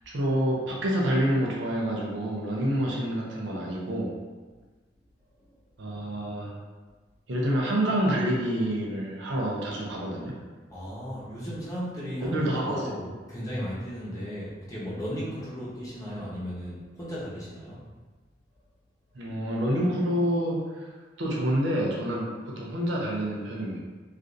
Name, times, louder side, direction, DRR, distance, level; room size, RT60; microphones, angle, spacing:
voice 1, 0.1-4.1 5.8-6.5 7.3-10.3 12.2-12.8 19.1-20.9 21.2-23.8, equal, 75° right, -3 dB, 0.6 m, -27 dB
voice 2, 10.7-17.8, equal, 20° left, -8 dB, 0.8 m, -35 dB
3.1 x 2.5 x 2.5 m, 1.4 s
head